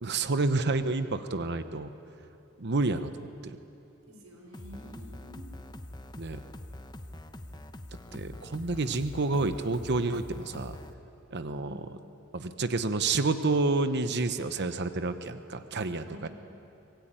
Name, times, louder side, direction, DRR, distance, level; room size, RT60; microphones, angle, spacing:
voice 1, 0.0-1.9 2.6-3.6 6.2-6.4 8.1-10.7 11.3-12.0 12.3-16.3, right 3 dB, 50° right, 10 dB, 0.9 m, -29 dB
voice 2, 4.1-5.5 11.6-11.7 16.1-16.3, equal, 80° right, 2 dB, 5.3 m, -48 dB
sound 1, 4.5-10.9, left 1 dB, 20° left, 1.0 m, -44 dB
25.0 x 19.0 x 9.1 m, 2.9 s
head